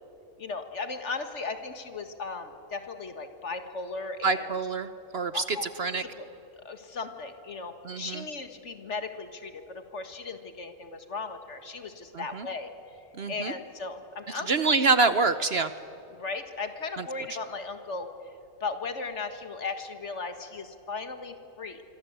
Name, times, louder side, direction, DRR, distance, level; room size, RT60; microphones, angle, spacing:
voice 1, 0.4-4.6 5.3-5.7 5.9-6.3 6.6-12.7 13.3-14.5 16.1-18.1 18.6-21.8, left 4 dB, 55° left, 7 dB, 1.9 m, -37 dB
voice 2, 4.2-4.9 5.1-6.0 7.9-8.2 12.3-12.5 13.2-13.5 14.5-15.7, right 4 dB, 50° right, 12 dB, 1.0 m, -25 dB
26.0 x 24.5 x 8.1 m, 2.9 s
omnidirectional pair, 1.5 m